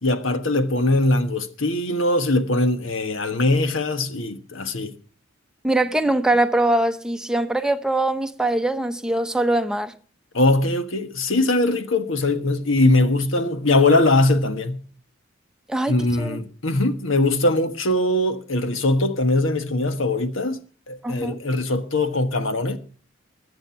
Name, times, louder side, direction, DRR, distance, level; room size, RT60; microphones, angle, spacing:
voice 1, 0.0-4.9 10.3-14.8 15.9-20.6 20.9-22.8, left 2 dB, 80° left, 1.4 m, -21 dB
voice 2, 5.6-9.9 15.7-16.4 21.0-21.4, right 1 dB, 5° right, 0.8 m, -22 dB
21.5 x 7.9 x 5.8 m
head